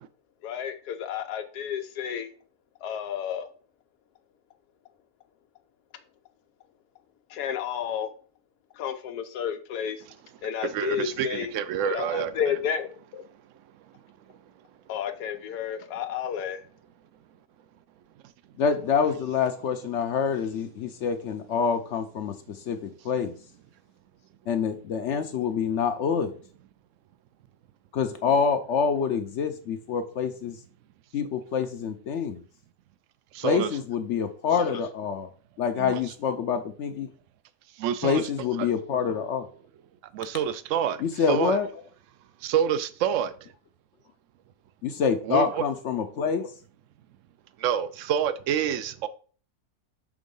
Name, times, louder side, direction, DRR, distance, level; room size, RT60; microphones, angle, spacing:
voice 1, 0.4-2.3 2.8-3.5 7.3-8.1 8.8-10.0 10.4-11.5 11.8-13.2 14.9-16.6, left 8 dB, 90° left, 1.2 m, -31 dB
voice 2, 10.7-12.5 33.3-33.7 35.8-36.0 37.8-38.3 38.6-38.7 40.1-41.6 42.4-43.5 45.2-45.6 47.6-49.1, right 9 dB, 70° right, 0.8 m, -28 dB
voice 3, 18.6-22.3 22.7-23.3 24.5-26.3 27.9-30.6 31.1-32.4 33.4-35.3 35.6-37.1 38.0-39.5 41.0-41.7 44.8-46.5, left 6 dB, 65° left, 0.8 m, -26 dB
6.1 x 3.6 x 5.3 m
omnidirectional pair, 1.7 m